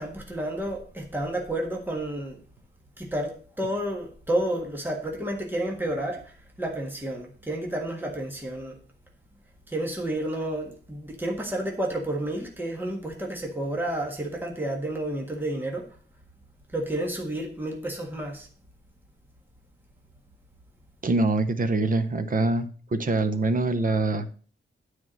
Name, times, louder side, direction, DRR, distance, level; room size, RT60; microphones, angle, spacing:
voice 1, 0.0-2.4 3.0-8.8 9.7-15.9 16.7-18.5, right 1 dB, 10° right, -1 dB, 1.6 m, -31 dB
voice 2, 21.0-24.3, right 2 dB, 40° right, 9 dB, 0.8 m, -24 dB
9.4 x 4.8 x 6.2 m, 0.41 s
wide cardioid pair, 175°, 21 cm